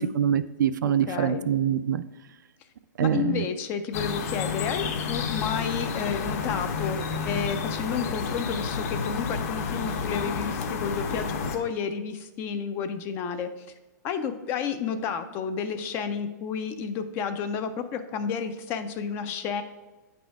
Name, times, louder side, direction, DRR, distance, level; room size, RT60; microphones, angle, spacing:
voice 1, 0.0-2.0 3.0-3.4, right 9 dB, 85° right, 13 dB, 0.4 m, -25 dB
voice 2, 0.8-1.5 3.0-7.0 7.2-13.5 14.0-19.6, left 7 dB, 25° left, 9 dB, 0.3 m, -31 dB
sound 1, 3.9-11.6, left 5 dB, 50° left, 0.9 m, -30 dB
8.4 x 4.3 x 4.5 m, 1.1 s
hypercardioid pair, 155°, 10 cm